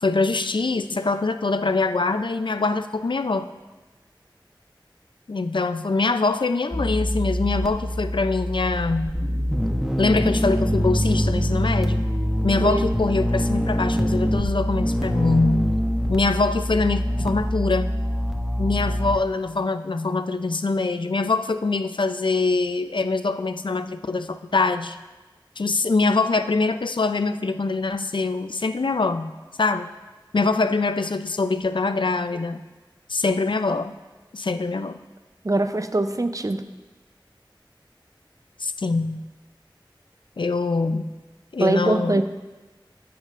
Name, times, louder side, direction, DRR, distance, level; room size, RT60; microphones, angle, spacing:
voice 1, 0.0-3.5 5.3-9.1 10.0-12.0 12.4-15.7 16.1-17.9 18.6-25.0 25.6-29.3 29.6-29.9 30.3-32.6 33.1-33.9 34.3-35.0 38.6-39.2 40.4-41.1 41.5-42.2, left 3 dB, 70° left, 10 dB, 0.4 m, -23 dB
sound 1, 6.7-19.2, equal, 5° right, 0.9 m, -24 dB
voice 2, 35.4-36.6 41.6-42.2, right 2 dB, 40° right, 9 dB, 0.6 m, -22 dB
14.0 x 8.7 x 2.5 m, 1.2 s
wide cardioid pair, 45°, 9 cm